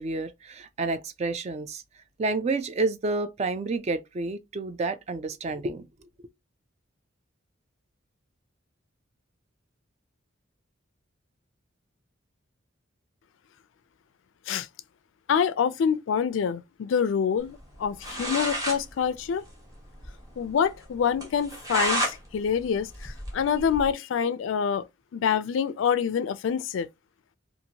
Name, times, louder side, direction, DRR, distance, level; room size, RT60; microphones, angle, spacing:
voice 1, 0.0-1.8 2.2-5.9, right 3 dB, 35° right, 0.3 m, -29 dB
voice 2, 15.3-19.4 20.4-24.9 25.1-26.9, left 7 dB, 75° left, 0.3 m, -26 dB
sound 1, 17.7-17.8 18.0-18.8 19.1-19.2 19.5-19.6 20.0-20.1 20.5-20.6 21.2-22.2 22.5-23.9, equal, 20° right, 1.1 m, -30 dB
2.7 x 2.5 x 2.8 m
head